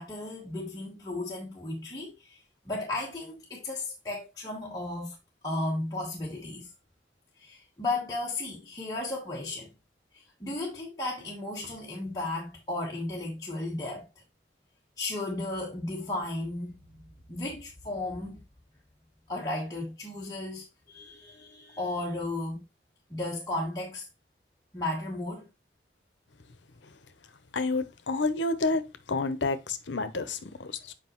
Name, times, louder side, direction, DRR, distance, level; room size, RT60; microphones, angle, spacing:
voice 1, 0.0-2.4 2.7-5.1 5.4-6.7 7.4-9.7 10.1-14.1 15.0-16.8 17.3-18.4 19.3-22.6 23.1-24.1 24.7-25.5, left 2 dB, 20° left, 1.2 m, -34 dB
voice 2, 27.5-28.8 29.1-30.9, left 3 dB, 85° left, 0.8 m, -29 dB
7.6 x 5.0 x 3.0 m
head